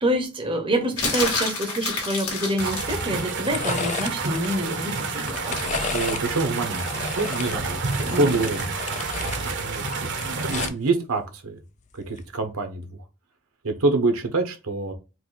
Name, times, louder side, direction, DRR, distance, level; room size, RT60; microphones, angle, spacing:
voice 1, 0.0-6.0 8.0-8.4, right 1 dB, 25° right, 0.8 m, -27 dB
sound 1, 1.0-3.0 5.6-5.7, left 3 dB, 85° left, 2.1 m, -28 dB
sound 2, 2.2-2.5 2.8-4.5 5.1-6.2 6.6-9.4 9.8-10.9 12.0-12.3, left 6 dB, 35° left, 0.3 m, -34 dB
sound 3, 2.6-10.7, right 4 dB, 55° right, 0.9 m, -29 dB
voice 2, 5.9-11.6 11.9-13.0 13.6-14.9, right 3 dB, 75° right, 1.1 m, -27 dB
4.6 x 2.6 x 4.0 m
head